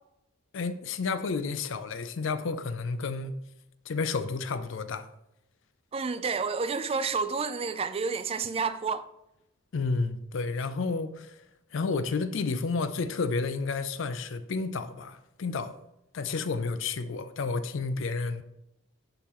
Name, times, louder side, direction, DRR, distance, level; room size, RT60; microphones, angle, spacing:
voice 1, 0.5-3.3 3.9-5.1 9.7-11.4 11.7-15.8 16.1-18.4, left 4 dB, 65° left, 0.4 m, -31 dB
voice 2, 5.9-9.1, right 5 dB, 30° right, 0.3 m, -30 dB
10.5 x 3.7 x 3.0 m
head